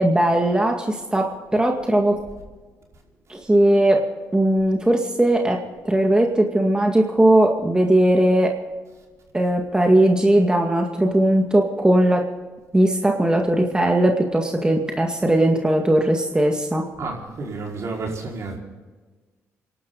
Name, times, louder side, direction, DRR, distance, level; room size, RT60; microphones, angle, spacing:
voice 1, 0.0-2.1 3.3-4.0 4.3-8.5 9.3-12.3 12.7-16.8, right 1 dB, 15° right, 2.1 m, -19 dB
voice 2, 17.0-18.6, right 3 dB, 55° right, 5.0 m, -30 dB
26.5 x 12.0 x 4.0 m
cardioid pair, 65°, 6 cm